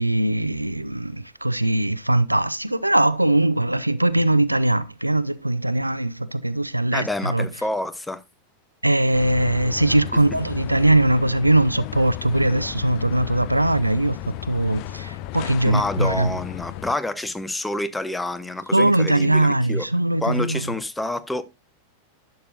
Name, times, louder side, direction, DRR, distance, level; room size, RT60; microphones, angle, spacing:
voice 1, 0.0-7.5 8.8-14.2 14.4-16.4 18.7-20.6, right 1 dB, 85° right, 0.4 m, -21 dB
voice 2, 6.9-8.2 15.7-19.9 20.2-21.4, left 2 dB, 5° left, 0.7 m, -28 dB
sound 1, 9.1-16.9, left 14 dB, 45° left, 0.4 m, -34 dB
11.5 x 6.6 x 2.4 m
figure-of-eight pair, 90°, 0 cm